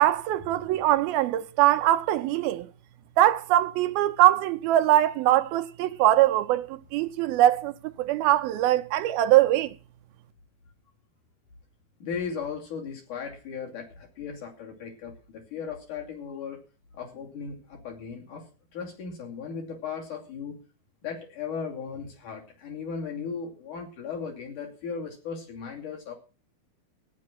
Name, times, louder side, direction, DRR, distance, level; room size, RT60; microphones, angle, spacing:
voice 1, 0.0-2.7 3.2-9.7, right 13 dB, 80° right, 2.6 m, -22 dB
voice 2, 12.0-16.6 16.9-18.5 18.7-20.6 21.0-26.1, left 6 dB, 55° left, 4.1 m, -36 dB
14.5 x 9.9 x 6.0 m
omnidirectional pair, 4.3 m